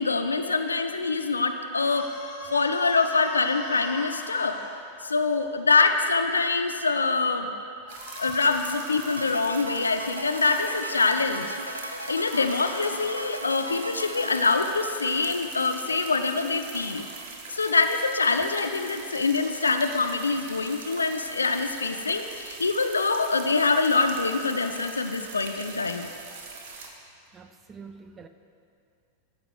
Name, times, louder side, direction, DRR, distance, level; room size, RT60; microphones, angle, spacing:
voice 1, 0.0-2.1 2.5-4.6 5.0-7.5 8.2-11.6 12.1-17.1 17.5-26.1, left 4 dB, 75° left, 7 dB, 0.4 m, -25 dB
sound 1, 1.7-4.7 7.8-9.0 10.2-10.8 11.9-13.1, left 2 dB, 55° left, 1.1 m, -42 dB
sound 2, 7.9-26.9, right 4 dB, 55° right, 0.9 m, -42 dB
sound 3, 9.1-15.4, equal, 90° right, 0.3 m, -37 dB
voice 2, 27.3-28.3, right 5 dB, 20° right, 8 dB, 0.4 m, -46 dB
12.0 x 4.7 x 3.7 m, 2.5 s
figure-of-eight pair, 90°, 0 cm